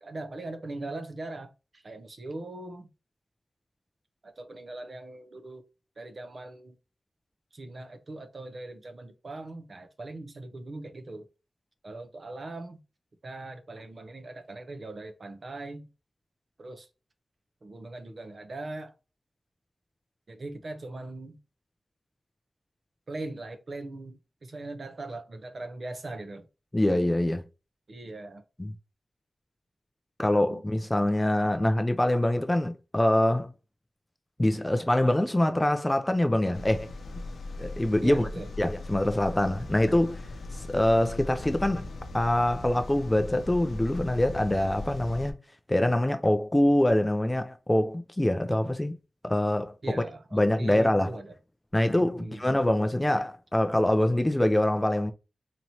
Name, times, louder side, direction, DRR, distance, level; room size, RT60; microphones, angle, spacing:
voice 1, 0.0-2.9 4.2-5.6 6.0-6.8 7.5-11.3 11.8-12.8 13.2-15.9 16.6-16.9 17.6-18.9 20.3-21.4 23.1-26.4 27.9-28.4 30.4-30.6 38.0-38.5 49.8-51.3 52.0-52.4, right 2 dB, 45° right, 0.6 m, -40 dB
voice 2, 26.7-27.4 28.6-28.7 30.2-33.5 34.4-36.9 37.6-38.3 38.6-40.2 40.5-41.9 42.1-45.4 45.7-49.0 49.2-50.0 50.3-51.2 51.7-55.1, left 1 dB, 15° left, 0.3 m, -24 dB
sound 1, 36.5-45.3, left 2 dB, 80° left, 0.5 m, -39 dB
4.3 x 2.9 x 2.7 m
wide cardioid pair, 140°, 0 cm